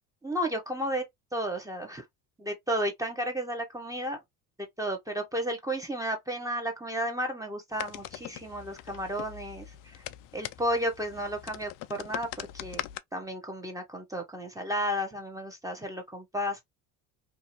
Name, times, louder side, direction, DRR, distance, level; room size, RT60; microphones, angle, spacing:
voice 1, 0.2-1.0 1.3-2.0 2.4-4.2 4.8-9.8 10.3-12.8 13.1-16.6, equal, 10° right, 0.9 m, -33 dB
sound 1, 7.7-13.0, left 14 dB, 50° left, 0.4 m, -42 dB
2.7 x 2.5 x 2.7 m
supercardioid pair, 90°, 43 cm